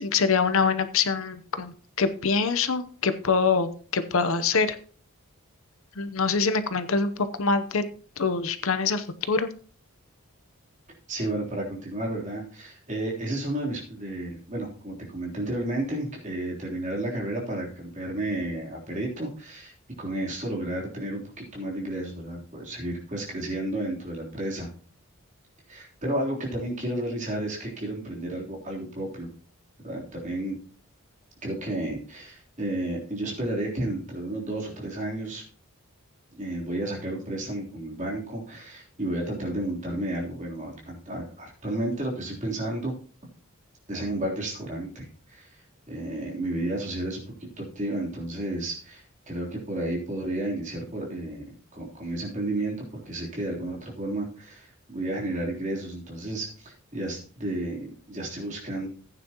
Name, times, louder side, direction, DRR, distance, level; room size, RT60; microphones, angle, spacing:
voice 1, 0.0-4.8 6.0-7.9 8.2-9.5, left 4 dB, 65° left, 10 dB, 0.8 m, -25 dB
voice 2, 11.1-19.7 20.0-24.7 25.7-29.3 29.8-30.6 31.4-35.4 36.3-42.9 43.9-45.5 45.9-51.4 51.7-58.9, right 1 dB, 35° right, -2 dB, 3.4 m, -32 dB
15.0 x 9.2 x 3.0 m, 0.42 s
head